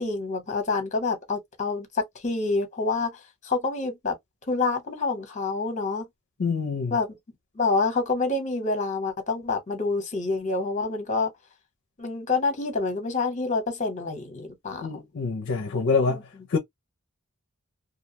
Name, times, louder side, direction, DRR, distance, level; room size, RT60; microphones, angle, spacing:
voice 1, 0.0-3.2 3.4-4.1 4.5-6.1 6.9-7.1 7.5-11.3 12.0-15.0 16.1-16.4, left 3 dB, 35° left, 1.0 m, -27 dB
voice 2, 6.4-6.9 14.8-16.2 16.5-16.6, left 4 dB, 60° left, 0.5 m, -25 dB
2.5 x 2.2 x 2.8 m
head